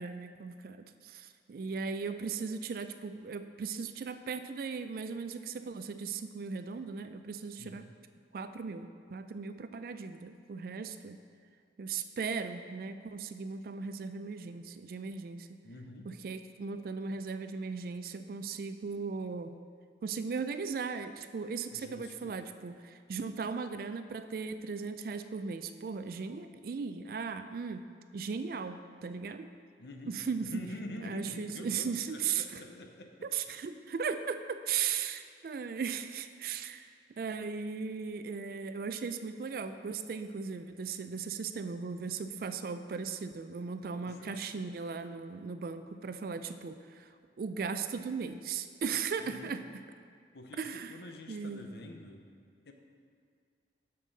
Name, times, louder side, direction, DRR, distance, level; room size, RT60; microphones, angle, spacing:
voice 1, 0.0-7.9 8.3-11.2 11.8-15.6 16.0-19.5 20.0-27.8 28.1-29.5 30.1-30.5 31.0-32.6 33.3-36.9 37.2-47.1 47.4-49.6 50.6-51.0 51.3-51.7, right 5 dB, 50° right, 10 dB, 0.3 m, -37 dB
voice 2, 15.6-16.1 21.7-22.4 29.8-33.1 44.0-44.6 49.2-49.5 50.3-52.2 52.6-52.7, left 1 dB, 65° left, 4 dB, 0.7 m, -46 dB
7.3 x 6.7 x 4.0 m, 2.2 s
head